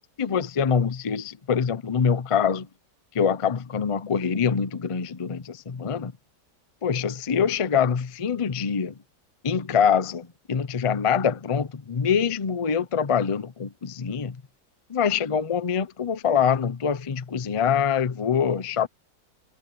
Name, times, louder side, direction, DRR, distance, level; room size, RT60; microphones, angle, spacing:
voice 1, 0.2-2.7 3.1-6.1 6.8-9.0 9.4-14.4 14.9-18.9, left 7 dB, 50° left, 0.3 m, -24 dB
omnidirectional pair, 1.9 m